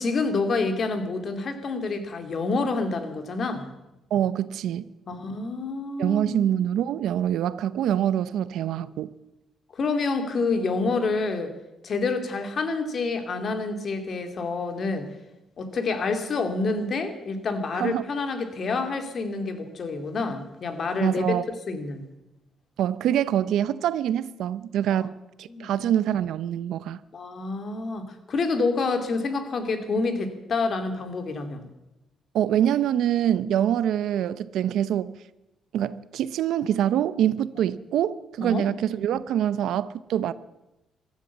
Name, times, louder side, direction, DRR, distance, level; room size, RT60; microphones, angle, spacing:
voice 1, 0.0-3.7 5.1-6.4 9.7-11.5 11.8-15.1 15.6-21.2 21.7-22.0 24.9-25.0 25.5-25.7 27.1-31.7 38.4-38.7, left 3 dB, 50° left, 2.4 m, -28 dB
voice 2, 4.1-4.9 6.0-9.1 17.8-18.0 21.0-21.4 22.8-27.0 32.3-35.2 35.7-40.3, right 10 dB, 80° right, 0.6 m, -25 dB
15.5 x 13.0 x 7.3 m
cardioid pair, 90°, 0 cm